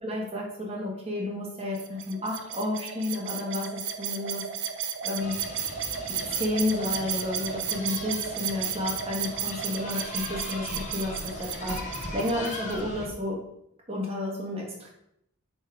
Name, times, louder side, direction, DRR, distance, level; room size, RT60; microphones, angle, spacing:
voice 1, 0.0-3.7 4.0-4.4 5.0-5.3 6.1-11.8 12.1-13.4 13.9-14.9, left 2 dB, 25° right, -1 dB, 1.5 m, -31 dB
sound 1, 1.7-12.8, right 8 dB, 55° right, 0.6 m, -34 dB
sound 2, 5.2-13.1, left 2 dB, 30° left, 1.1 m, -39 dB
5.5 x 5.5 x 4.8 m, 0.78 s
head